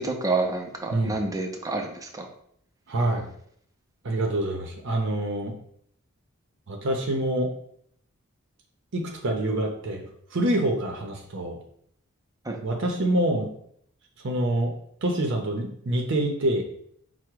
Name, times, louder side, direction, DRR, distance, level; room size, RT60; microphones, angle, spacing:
voice 1, 0.0-2.3 12.4-12.6, right 3 dB, 15° right, 3 dB, 0.5 m, -28 dB
voice 2, 2.9-3.3 4.0-5.5 6.7-7.5 8.9-10.1 10.3-11.6 12.6-13.5 14.2-14.7 15.0-16.6, right 1 dB, 55° right, 2 dB, 0.6 m, -26 dB
4.7 x 2.1 x 4.5 m, 0.67 s
head